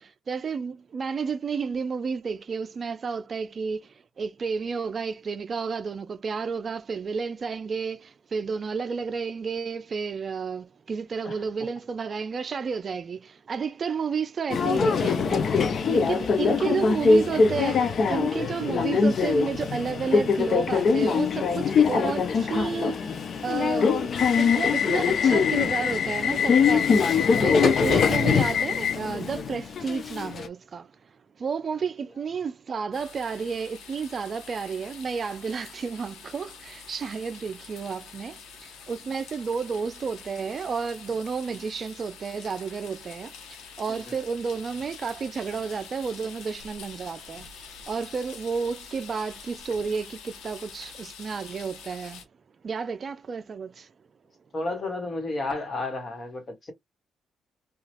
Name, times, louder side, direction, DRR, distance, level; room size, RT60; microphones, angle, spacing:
voice 1, 0.0-30.9 31.4-47.5 47.9-52.2 52.6-53.9, right 5 dB, 45° right, 0.4 m, -31 dB
Subway metro underground, 14.5-30.5, left 5 dB, 55° left, 0.5 m, -23 dB
voice 2, 16.0-16.5 43.9-44.2 54.5-56.7, left 2 dB, 35° left, 1.4 m, -33 dB
sound 1, 32.9-52.2, left 6 dB, 85° left, 0.8 m, -46 dB
2.9 x 2.4 x 2.8 m
cardioid pair, 90°, 0 cm